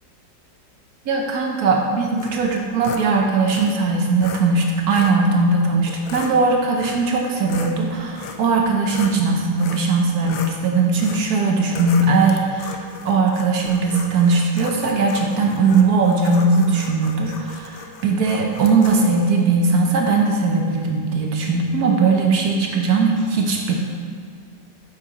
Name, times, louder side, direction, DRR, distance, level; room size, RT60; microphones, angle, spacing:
voice 1, 1.1-23.7, right 3 dB, 65° right, 1 dB, 1.2 m, -19 dB
sound 1, 2.2-3.1 3.5-3.7 4.2-4.4 4.9-5.2 5.9-6.3 6.8-7.1 7.4-9.2 9.6-9.9 10.2-10.6 11.0-11.3 11.7-19.1, left 6 dB, 80° left, 1.2 m, -36 dB
8.3 x 6.0 x 3.0 m, 2.1 s
omnidirectional pair, 1.9 m